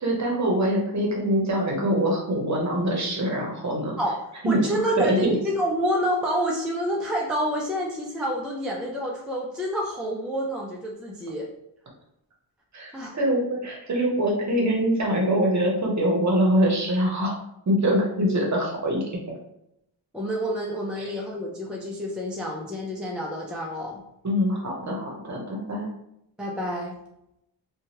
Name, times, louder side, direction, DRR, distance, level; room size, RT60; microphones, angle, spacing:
voice 1, 0.0-4.0 4.4-4.6 5.0-5.4 12.7-17.4 17.7-19.0 21.0-21.1 24.2-25.9, equal, 35° right, -1 dB, 0.9 m, -24 dB
voice 2, 4.4-11.5 12.9-13.2 20.1-24.0 26.4-27.0, equal, ahead, -2 dB, 0.3 m, -28 dB
2.7 x 2.3 x 2.9 m, 0.81 s
cardioid pair, 85°, 46 cm